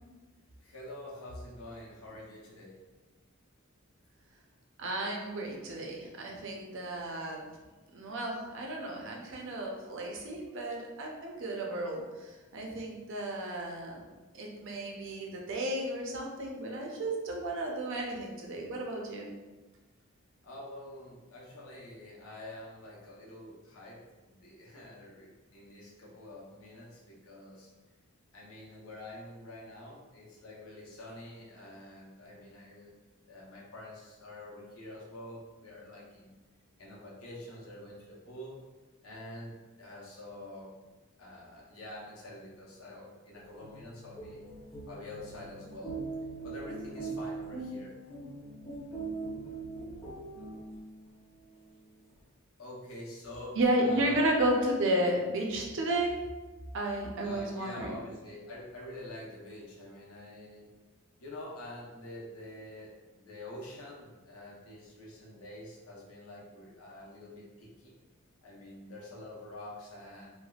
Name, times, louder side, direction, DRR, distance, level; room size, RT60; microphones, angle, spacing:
voice 1, 0.6-2.8 20.4-27.7 28.3-32.9 33.2-36.3 36.8-38.6 39.0-40.7 41.2-44.4 44.9-46.0 46.4-47.9 52.6-54.2 57.2-60.7 61.2-67.9 68.4-70.3, left 1 dB, 90° left, -5 dB, 0.8 m, -47 dB
voice 2, 4.8-7.4 7.9-14.1 14.3-19.3 53.5-56.2 56.7-57.9, right 1 dB, 60° right, 0 dB, 0.5 m, -33 dB
sound 1, 43.4-51.1, right 3 dB, 15° left, 0.7 m, -41 dB
3.3 x 2.1 x 2.3 m, 1.2 s
head